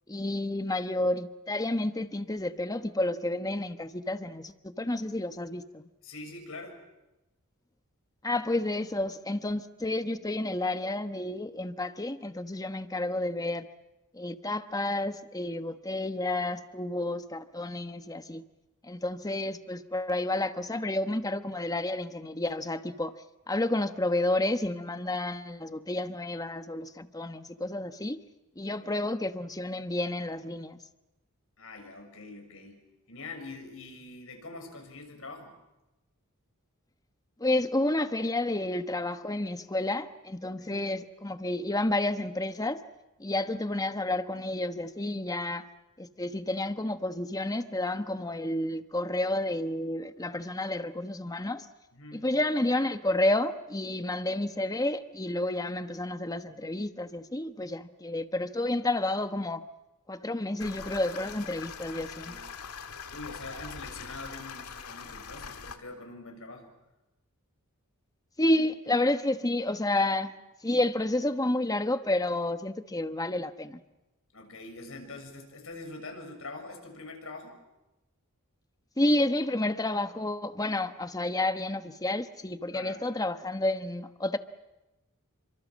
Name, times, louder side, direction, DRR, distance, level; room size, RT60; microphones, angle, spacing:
voice 1, 0.1-5.9 8.2-13.7 14.1-18.4 18.8-23.1 23.5-28.2 28.6-30.8 37.4-42.8 43.2-45.7 46.0-51.7 52.1-59.6 60.1-62.3 68.4-70.3 70.6-73.8 79.0-84.4, left 1 dB, 15° left, 1.1 m, -30 dB
voice 2, 6.0-6.8 28.8-28.9 31.6-32.8 33.1-35.5 40.4-40.8 51.9-52.3 62.2-62.5 63.1-66.7 74.3-77.6 82.7-83.1, left 3 dB, 65° left, 6.8 m, -44 dB
sound 1, 60.6-65.8, left 6 dB, 85° left, 2.0 m, -42 dB
29.5 x 25.0 x 7.4 m
head